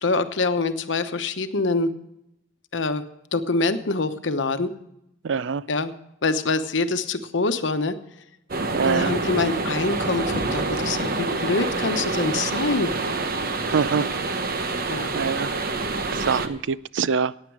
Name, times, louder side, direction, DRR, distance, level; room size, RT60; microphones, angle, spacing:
voice 1, 0.0-1.9 2.7-3.0 3.3-4.7 5.7-5.9 6.2-8.0 8.8-12.9 14.9-15.1, left 3 dB, 70° left, 9 dB, 1.0 m, -25 dB
voice 2, 5.2-5.6 8.7-9.1 13.7-14.1 15.1-15.5 16.1-17.3, right 6 dB, 70° right, 18 dB, 0.4 m, -24 dB
sound 1, 8.5-16.5, right 3 dB, 50° right, 1.0 m, -27 dB
16.5 x 9.2 x 4.7 m, 0.80 s
head